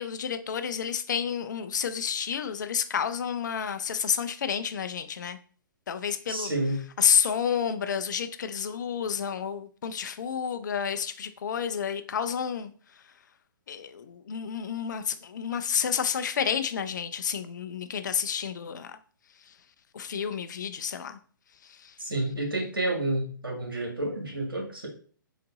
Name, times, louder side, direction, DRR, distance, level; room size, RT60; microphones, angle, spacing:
voice 1, 0.0-5.4 5.9-6.5 7.0-12.7 13.7-18.9 19.9-21.2, left 7 dB, 55° left, 0.4 m, -30 dB
voice 2, 6.3-6.8 22.0-24.9, right 1 dB, 85° right, 1.5 m, -30 dB
3.9 x 2.5 x 3.9 m
figure-of-eight pair, 125°, 11 cm